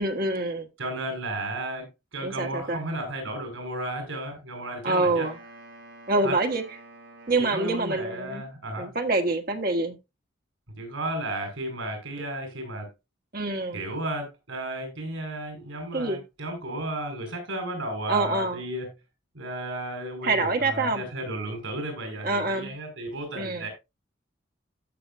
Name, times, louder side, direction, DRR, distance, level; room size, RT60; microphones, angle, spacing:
voice 1, 0.0-0.7 2.2-2.8 4.8-5.4 6.1-6.6 7.3-8.4 8.8-10.0 13.3-13.8 15.9-16.2 18.1-18.6 20.2-21.0 22.2-22.7 23.3-23.7, right 2 dB, 50° right, 1.5 m, -26 dB
voice 2, 0.8-5.3 6.2-6.3 7.4-8.9 10.8-12.9 13.7-18.9 19.3-23.7, right 1 dB, 85° right, 5.4 m, -33 dB
Wind instrument woodwind instrument, 5.2-8.7, right 2 dB, 70° right, 5.1 m, -49 dB
15.0 x 6.1 x 2.6 m
head